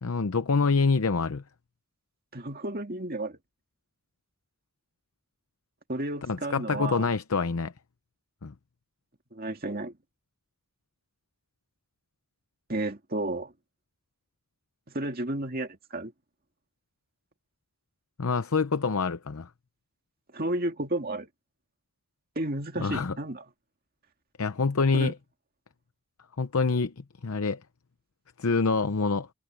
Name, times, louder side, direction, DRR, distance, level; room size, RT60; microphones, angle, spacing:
voice 1, 0.0-1.4 6.2-7.7 8.4-8.5 18.2-19.5 22.8-23.2 24.4-25.1 26.4-27.6 28.4-29.3, left 4 dB, 75° left, 0.7 m, -26 dB
voice 2, 2.3-3.4 5.9-7.1 9.3-9.9 12.7-13.5 14.9-16.1 20.3-21.3 22.4-23.4 24.9-25.1, right 1 dB, 40° right, 2.3 m, -32 dB
head